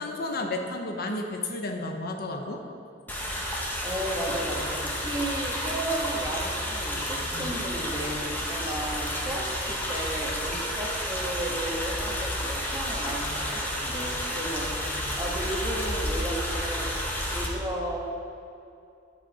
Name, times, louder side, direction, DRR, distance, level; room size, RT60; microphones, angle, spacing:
voice 1, 0.0-2.6 7.3-7.6 14.9-15.2, left 2 dB, 55° left, 3 dB, 0.9 m, -32 dB
sound 1, 3.1-17.5, equal, 10° left, 1.5 m, -31 dB
voice 2, 3.8-16.9 17.3-18.0, right 1 dB, 20° right, -2 dB, 1.6 m, -34 dB
10.5 x 8.0 x 4.9 m, 2.6 s
head